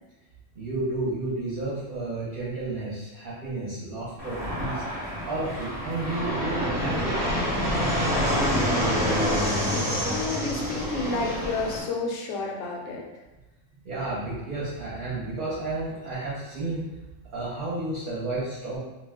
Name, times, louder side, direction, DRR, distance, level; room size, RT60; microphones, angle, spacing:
voice 1, 0.6-4.8 5.2-7.2 7.6-8.2 13.8-16.8 17.3-18.8, right 2 dB, 50° right, -8 dB, 0.8 m, -31 dB
Fixed-wing aircraft airplane, 4.2-11.8, equal, 10° right, 0.8 m, -27 dB
voice 2, 10.1-13.0, left 3 dB, 85° left, -1 dB, 1.0 m, -30 dB
2.4 x 2.2 x 3.5 m, 1.1 s
omnidirectional pair, 1.3 m